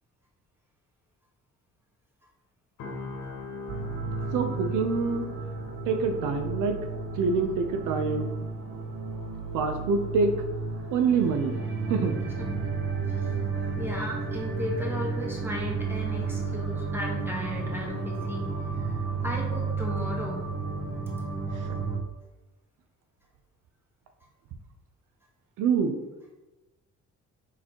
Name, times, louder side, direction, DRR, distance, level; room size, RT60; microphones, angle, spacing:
sound 1, 2.8-16.8 17.1-17.4, left 3 dB, 80° left, 1.1 m, -45 dB
sound 2, 3.7-22.0, right 4 dB, 45° right, 0.8 m, -32 dB
voice 1, 4.3-5.3 5.9-6.8 7.2-8.3 9.5-10.3 10.9-11.6 11.9-12.1 21.5-21.7 25.6-26.0, right 5 dB, 80° right, 6 dB, 0.6 m, -26 dB
voice 2, 13.8-18.5 18.8-20.5, left 1 dB, 5° right, -2 dB, 1.3 m, -36 dB
4.3 x 4.1 x 2.9 m, 1.0 s
cardioid pair, 85°, 31 cm